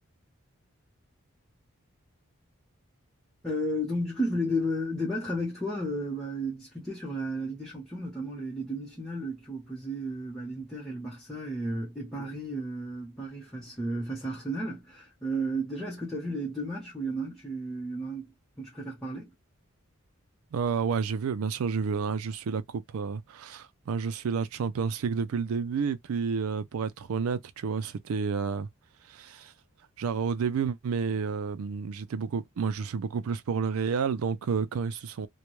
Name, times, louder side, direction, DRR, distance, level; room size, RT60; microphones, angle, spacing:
voice 1, 3.4-18.3 18.6-19.3, equal, ahead, 0.8 m, -33 dB
voice 2, 20.5-28.7 29.1-29.5 30.0-35.3, right 5 dB, 80° right, 0.4 m, -30 dB
2.2 x 2.1 x 3.0 m
head